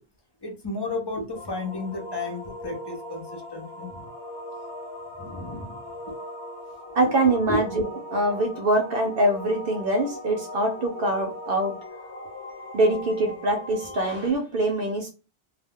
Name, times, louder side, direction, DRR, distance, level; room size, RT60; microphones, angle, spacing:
voice 1, 0.4-4.1 5.2-5.8 6.1-6.2 7.0-7.1 7.5-7.6, left 2 dB, 30° left, 0.6 m, -33 dB
sound 1, 1.3-14.3, left 1 dB, 80° left, 1.2 m, -39 dB
voice 2, 7.0-7.8 8.1-11.8 12.7-15.1, right 1 dB, 65° right, 0.8 m, -24 dB
2.3 x 2.1 x 3.5 m
omnidirectional pair, 1.1 m